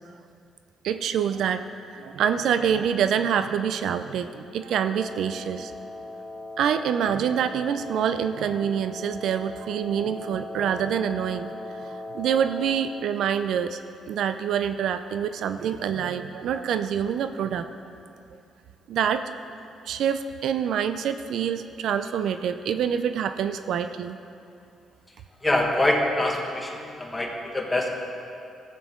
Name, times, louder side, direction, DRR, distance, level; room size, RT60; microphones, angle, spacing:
voice 1, 0.8-5.7 6.6-13.8 14.1-17.6 18.9-19.2 19.8-24.2, right 8 dB, 75° right, 10 dB, 0.4 m, -26 dB
Wind instrument woodwind instrument, 4.8-13.1, left 2 dB, 35° right, 2.6 m, -39 dB
voice 2, 25.4-27.9, left 1 dB, 15° left, 0 dB, 1.5 m, -25 dB
15.0 x 8.2 x 3.7 m, 2.6 s
cardioid pair, 90°, 0 cm